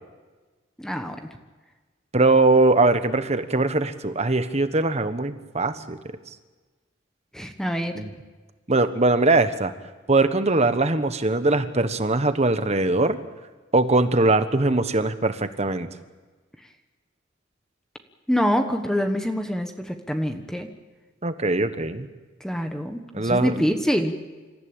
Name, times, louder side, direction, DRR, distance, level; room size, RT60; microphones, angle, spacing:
voice 1, 0.8-1.2 7.3-8.0 18.3-20.7 22.4-24.1, equal, 5° left, 6 dB, 1.2 m, -25 dB
voice 2, 2.1-6.0 7.9-8.1 8.7-9.7 10.1-13.2 13.7-15.9 21.2-22.1 23.1-23.6, right 2 dB, 35° right, 10 dB, 1.3 m, -21 dB
27.0 x 15.0 x 8.9 m, 1.3 s
head